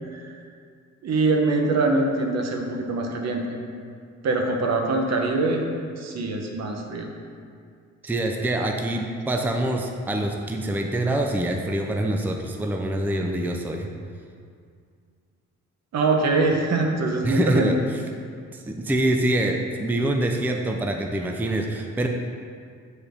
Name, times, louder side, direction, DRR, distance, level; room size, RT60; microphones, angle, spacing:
voice 1, 1.0-3.4 4.2-5.6 6.0-7.1 15.9-17.7, right 3 dB, 60° right, 2 dB, 1.1 m, -23 dB
voice 2, 8.0-13.9 17.2-17.8 18.5-22.1, right 1 dB, 5° right, 2 dB, 0.5 m, -25 dB
7.0 x 4.3 x 5.1 m, 2.2 s
cardioid pair, 90°, 30 cm